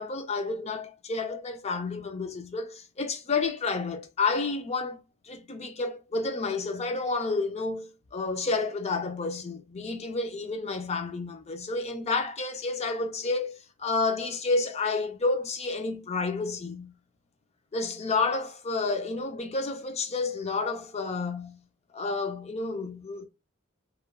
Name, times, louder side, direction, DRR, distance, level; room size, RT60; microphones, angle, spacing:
voice 1, 0.0-5.0 5.2-16.9 17.7-21.6 21.9-23.3, left 3 dB, 30° left, 0.5 m, -30 dB
3.0 x 2.2 x 2.2 m
head